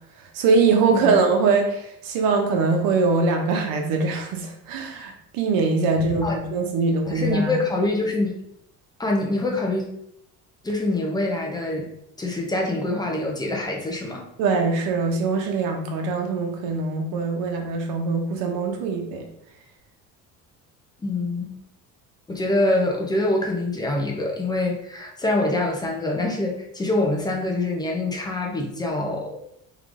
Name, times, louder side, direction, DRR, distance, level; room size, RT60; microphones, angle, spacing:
voice 1, 0.2-7.6 14.4-19.2, right 4 dB, 90° right, 3 dB, 1.0 m, -22 dB
voice 2, 6.0-6.4 7.1-8.3 9.0-9.9 10.6-11.9 12.2-14.2 21.0-21.6 22.3-29.3, left 2 dB, 10° left, -1 dB, 0.7 m, -25 dB
3.7 x 3.2 x 3.7 m, 0.76 s
cardioid pair, 150°, 34 cm